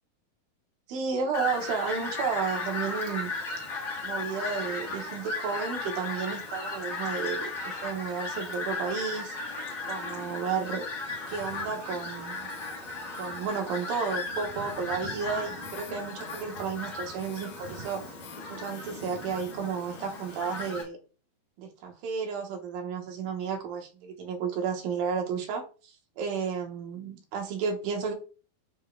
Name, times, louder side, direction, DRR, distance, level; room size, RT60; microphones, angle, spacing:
voice 1, 0.9-3.3 4.0-9.4 9.9-10.9 11.3-12.5 13.1-18.0 18.5-21.0 21.6-28.1, right 6 dB, 75° right, 3 dB, 2.8 m, -32 dB
Fowl, 1.3-20.8, left 3 dB, 45° left, 1.6 m, -36 dB
sound 1, 11.3-20.9, left 4 dB, 75° left, 2.2 m, -50 dB
9.8 x 4.6 x 2.3 m, 0.35 s
omnidirectional pair, 4.3 m